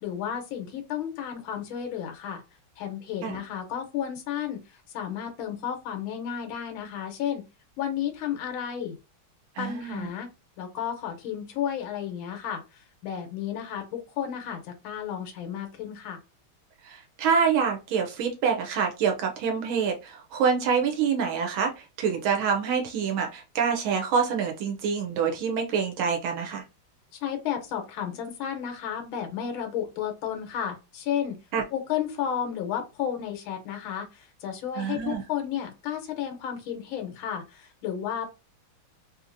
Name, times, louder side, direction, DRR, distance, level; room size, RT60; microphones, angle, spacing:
voice 1, 0.0-2.4 2.8-7.4 7.8-9.0 9.6-10.3 10.6-16.2 27.2-31.4 31.7-38.3, left 9 dB, 80° left, 4 dB, 1.6 m, -32 dB
voice 2, 9.6-10.1 16.8-26.6 31.5-31.6 34.8-35.2, right 6 dB, 80° right, 2 dB, 1.4 m, -26 dB
3.6 x 2.8 x 2.5 m, 0.28 s
omnidirectional pair, 2.2 m